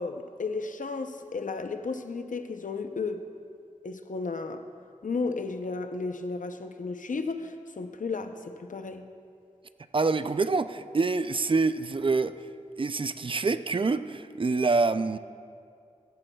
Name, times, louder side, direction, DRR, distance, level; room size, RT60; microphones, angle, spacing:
voice 1, 0.0-3.2 3.8-4.6 5.0-9.0, left 4 dB, 80° left, 7 dB, 0.6 m, -33 dB
voice 2, 9.9-12.4 12.8-15.2, right 3 dB, 40° right, 12 dB, 0.4 m, -26 dB
16.0 x 14.0 x 2.3 m, 2.3 s
wide cardioid pair, 75°, 13 cm